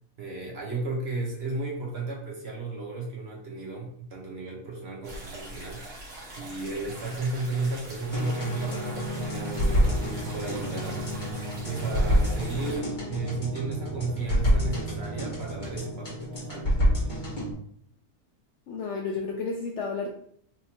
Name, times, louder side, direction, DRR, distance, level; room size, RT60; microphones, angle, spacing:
voice 1, 0.2-5.8 6.4-11.1 11.7-16.7, right 3 dB, 50° right, -2 dB, 1.0 m, -34 dB
sound 1, 5.0-12.8, right 1 dB, 65° right, 1.6 m, -43 dB
sound 2, 6.3-15.7, right 4 dB, 25° right, 0.6 m, -44 dB
sound 3, 8.1-17.5, equal, 35° left, 1.3 m, -28 dB
voice 2, 18.7-20.1, left 4 dB, 70° left, 1 dB, 0.7 m, -31 dB
4.2 x 2.7 x 2.8 m, 0.63 s
omnidirectional pair, 1.6 m